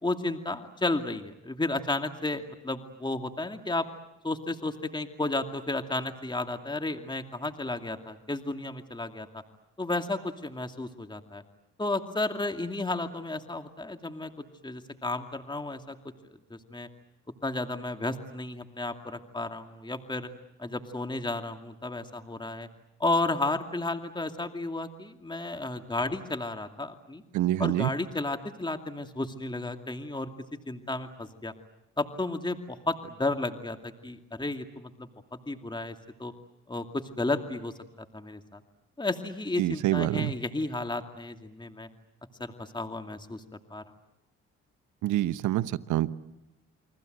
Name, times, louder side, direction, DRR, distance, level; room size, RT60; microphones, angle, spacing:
voice 1, 0.0-3.9 4.2-9.4 9.8-11.4 11.8-16.0 16.3-16.9 17.4-20.3 20.6-22.7 23.0-27.2 27.6-30.3 30.7-31.5 32.0-35.1 35.5-36.3 36.7-37.7 38.1-38.6 39.0-41.9 42.4-43.4 43.7-43.8, left 2 dB, 15° left, 6 dB, 2.5 m, -33 dB
voice 2, 27.3-27.9 39.6-40.3 45.0-46.1, right 14 dB, 75° right, 15 dB, 1.1 m, -26 dB
30.0 x 23.5 x 8.0 m, 0.91 s
supercardioid pair, 60°, 30 cm